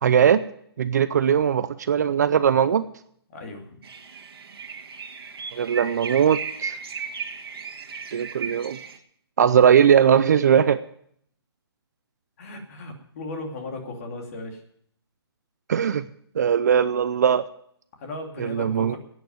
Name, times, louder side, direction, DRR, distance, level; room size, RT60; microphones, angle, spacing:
voice 1, 0.0-0.4 0.8-2.8 5.5-6.8 8.1-8.8 9.4-10.8 15.7-16.0 16.4-17.4 18.4-19.0, right 8 dB, 40° right, 13 dB, 0.6 m, -19 dB
voice 2, 3.3-3.8 12.4-14.6 18.0-19.0, left 2 dB, 35° left, 2 dB, 2.6 m, -36 dB
sound 1, 3.8-9.0, right 6 dB, 60° right, 1.9 m, -35 dB
11.5 x 9.2 x 9.4 m, 0.66 s
hypercardioid pair, 165°, 14 cm